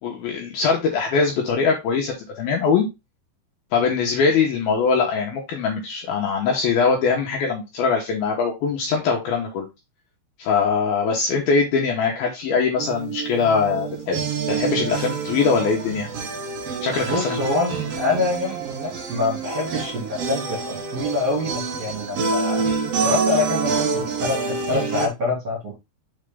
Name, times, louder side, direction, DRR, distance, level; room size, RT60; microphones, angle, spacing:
voice 1, 0.0-2.9 3.7-9.7 10.4-14.2 14.5-16.1 16.8-17.4, left 5 dB, 70° left, 0 dB, 2.5 m, -22 dB
sound 1, 12.8-25.1, right 5 dB, 70° right, 1.4 m, -27 dB
voice 2, 17.0-22.7 23.0-25.7, left 3 dB, 40° right, -3 dB, 3.0 m, -25 dB
6.5 x 4.3 x 3.5 m, 0.23 s
omnidirectional pair, 5.3 m